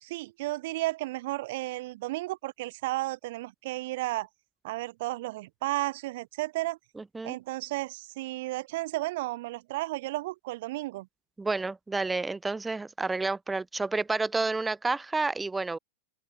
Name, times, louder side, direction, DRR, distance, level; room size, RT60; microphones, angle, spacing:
voice 1, 0.0-4.3 4.6-6.8 7.2-11.1, right 19 dB, 50° right, 1.3 m, -33 dB
voice 2, 7.0-7.4 11.4-15.8, right 3 dB, 10° right, 1.1 m, -30 dB
open air
figure-of-eight pair, 90°, 0 cm